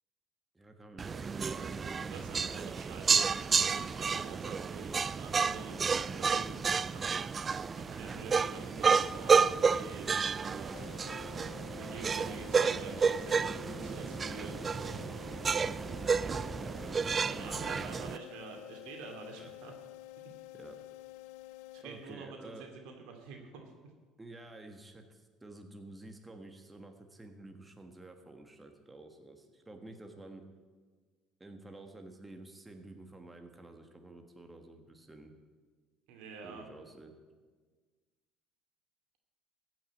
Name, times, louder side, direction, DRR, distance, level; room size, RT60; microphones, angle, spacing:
voice 1, 0.5-2.9 16.5-18.0 19.3-19.5 20.5-20.8 21.8-22.7 24.2-30.4 31.4-35.3 36.4-37.1, right 2 dB, 15° right, 4 dB, 1.4 m, -50 dB
sound 1, 1.0-18.2, right 5 dB, 30° right, 0.4 m, -31 dB
voice 2, 2.0-11.0 11.7-15.0 17.2-19.7 21.7-23.6 36.1-36.6, right 4 dB, 80° right, 2 dB, 2.5 m, -48 dB
sound 2, 10.7-22.4, left 17 dB, 80° left, 0.3 m, -50 dB
14.5 x 6.2 x 8.4 m, 1.4 s
supercardioid pair, 95°, 0 cm